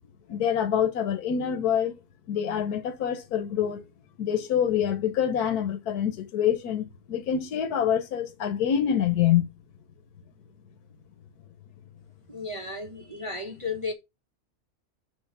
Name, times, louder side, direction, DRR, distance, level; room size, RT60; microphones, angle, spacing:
voice 1, 0.3-1.9 2.3-3.8 4.2-9.5, left 9 dB, 90° left, 1.4 m, -26 dB
voice 2, 12.3-13.9, left 3 dB, 25° right, 1.1 m, -34 dB
6.4 x 4.3 x 5.3 m
omnidirectional pair, 1.6 m